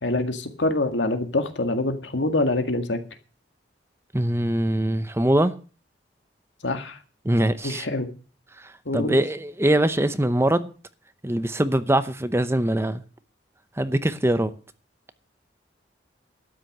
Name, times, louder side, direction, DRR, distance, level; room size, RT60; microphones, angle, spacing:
voice 1, 0.0-3.0 6.6-7.0 7.6-8.1 8.9-9.2, left 2 dB, 80° left, 1.9 m, -25 dB
voice 2, 4.1-5.5 7.2-7.9 8.6-10.7 11.2-13.0 13.8-14.5, right 1 dB, 15° right, 0.7 m, -22 dB
12.5 x 9.4 x 6.7 m
head